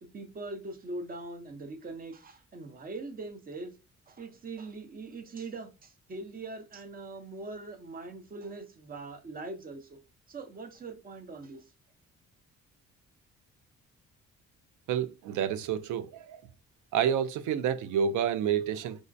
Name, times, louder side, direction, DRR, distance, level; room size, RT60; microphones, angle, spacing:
voice 1, 0.0-3.7 4.1-10.0 10.3-11.6, right 3 dB, 30° right, 0.7 m, -42 dB
voice 2, 14.9-16.4 16.9-19.0, right 8 dB, 80° right, 0.5 m, -29 dB
4.8 x 2.1 x 2.5 m
cardioid pair, 90°, 30 cm